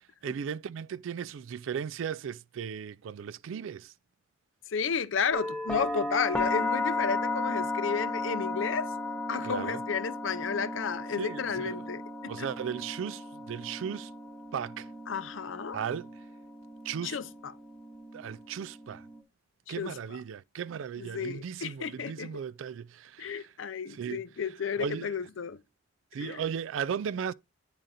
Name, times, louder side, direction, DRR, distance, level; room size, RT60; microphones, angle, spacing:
voice 1, 0.2-3.9 9.4-9.8 11.2-11.8 12.3-14.1 14.5-14.9 15.7-16.1 16.8-17.2 18.1-19.1 19.7-23.5 23.9-24.2 24.8-25.1 26.1-27.3, right 7 dB, 80° right, 0.3 m, -36 dB
voice 2, 4.7-8.9 9.3-12.5 15.1-15.8 17.0-17.5 19.7-20.0 21.0-22.3 23.2-25.6 26.2-26.4, left 6 dB, 75° left, 0.5 m, -32 dB
sound 1, 5.3-19.2, left 2 dB, 5° left, 0.7 m, -35 dB
9.0 x 3.8 x 4.1 m
head